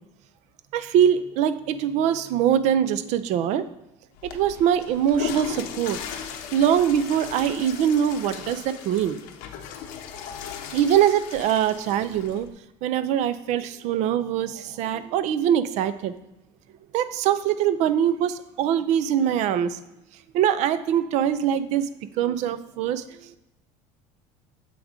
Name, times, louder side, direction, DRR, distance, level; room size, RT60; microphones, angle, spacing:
voice 1, 0.7-3.7 4.2-6.0 6.5-9.2 10.7-12.5 12.8-16.1 16.9-19.8 20.3-21.9 22.2-23.4, right 9 dB, 55° right, 13 dB, 0.4 m, -23 dB
Water / Toilet flush, 4.1-12.5, left 8 dB, 70° left, 0.8 m, -37 dB
7.6 x 3.5 x 5.0 m, 0.90 s
cardioid pair, 135°, 14 cm